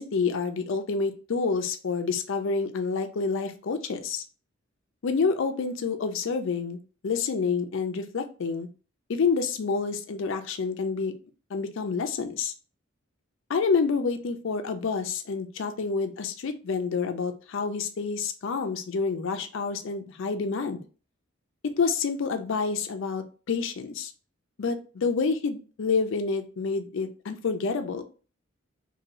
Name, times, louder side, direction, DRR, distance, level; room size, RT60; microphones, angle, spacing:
voice 1, 0.0-4.2 5.0-6.8 7.0-8.7 9.1-11.1 11.5-12.5 13.5-20.8 21.7-24.1 24.6-28.0, left 5 dB, 65° left, 7 dB, 0.4 m, -28 dB
2.6 x 2.6 x 3.0 m, 0.36 s
head